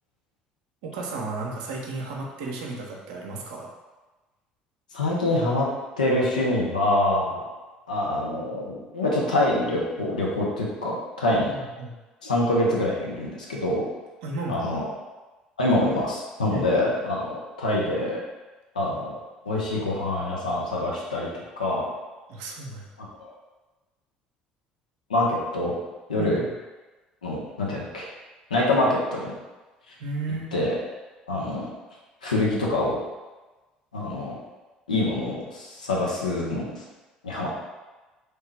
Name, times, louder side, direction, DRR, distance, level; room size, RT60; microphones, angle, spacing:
voice 1, 0.8-3.7 11.3-11.9 14.2-14.6 16.5-16.7 22.3-22.9 26.2-26.5 30.0-30.5, right 3 dB, 65° right, 0 dB, 0.5 m, -33 dB
voice 2, 4.9-5.7 6.0-7.4 7.9-11.5 12.2-13.8 14.5-14.9 15.6-18.2 18.7-19.2 19.5-21.9 23.2-23.3 25.1-25.7 26.1-26.4 27.2-28.1 28.5-29.3 30.5-30.8 31.3-31.7 32.2-33.0 33.9-34.4 34.9-36.8 37.2-37.5, left 1 dB, 80° left, -4 dB, 0.6 m, -25 dB
3.2 x 2.7 x 3.2 m, 1.2 s
figure-of-eight pair, 55°, 4 cm